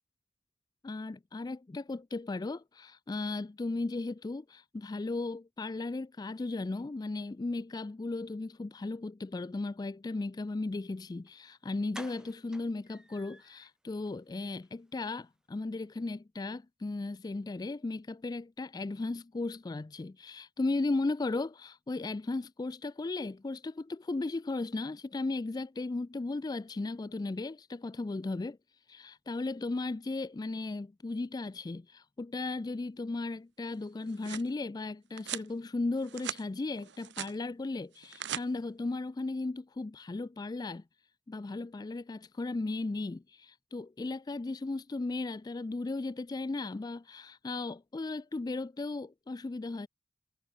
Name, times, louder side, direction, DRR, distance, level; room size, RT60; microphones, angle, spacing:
voice 1, 0.8-28.6 28.9-40.8 41.3-49.9, left 3 dB, 20° left, 0.3 m, -36 dB
sound 1, 11.3-11.4 11.9-13.7 14.1-14.2 14.5-14.7 14.9-15.0, right 1 dB, 5° right, 1.4 m, -51 dB
sound 2, 33.8-34.5 35.2-35.5 36.0-36.4 36.8-37.3 37.9-38.4, right 9 dB, 70° right, 1.1 m, -39 dB
head